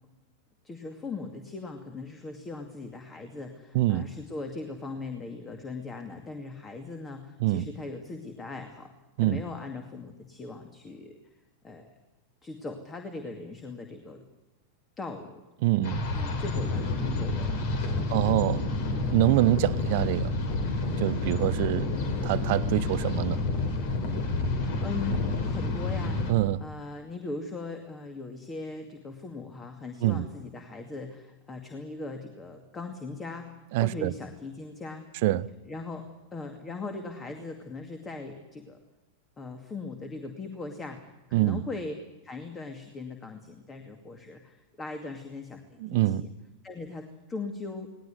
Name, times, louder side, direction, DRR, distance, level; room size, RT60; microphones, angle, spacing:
voice 1, 0.6-8.9 9.2-11.2 11.6-11.9 12.4-14.2 15.0-15.4 16.1-17.6 17.9-18.3 24.8-26.2 26.6-35.0 35.6-38.8 39.4-41.9 42.2-46.3 46.6-47.9, left 3 dB, 20° left, 2.3 m, -39 dB
voice 2, 3.7-4.1 7.4-7.7 9.2-9.4 15.6-16.0 18.1-18.6 19.1-20.4 21.0-21.9 22.2-23.4 26.3-26.6 30.0-30.3 33.7-34.1 35.2-35.5 41.3-41.6 45.8-46.3, right 16 dB, 50° right, 0.7 m, -25 dB
sound 1, 15.8-26.3, left 3 dB, 50° left, 4.2 m, -29 dB
20.0 x 18.5 x 9.5 m
figure-of-eight pair, 90°, 0 cm